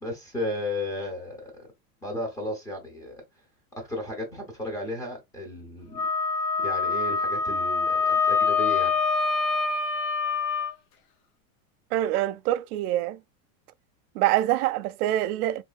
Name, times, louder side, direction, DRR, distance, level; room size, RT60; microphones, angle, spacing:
voice 1, 0.0-1.7 2.0-3.2 3.7-6.0 6.6-8.9, left 1 dB, 10° left, 0.6 m, -34 dB
Wind instrument woodwind instrument, 5.9-10.7, left 4 dB, 90° left, 1.1 m, -25 dB
voice 2, 11.9-13.2 14.1-15.6, right 14 dB, 80° right, 0.5 m, -25 dB
3.5 x 3.2 x 2.3 m
supercardioid pair, 175°, 44 cm